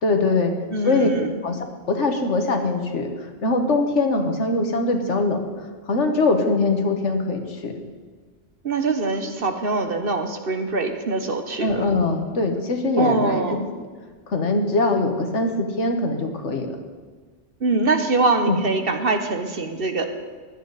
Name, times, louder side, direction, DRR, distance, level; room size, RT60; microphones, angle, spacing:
voice 1, 0.0-0.5 0.8-1.1 1.4-1.6 1.9-5.4 5.9-7.7 11.6-13.4 13.8-13.9 14.3-16.8 18.4-18.6, left 3 dB, 70° left, 4 dB, 1.7 m, -22 dB
voice 2, 0.7-1.3 8.6-11.8 13.0-13.6 17.6-20.0, right 3 dB, 50° right, 6 dB, 1.2 m, -23 dB
16.0 x 11.5 x 4.1 m, 1.5 s
omnidirectional pair, 1.3 m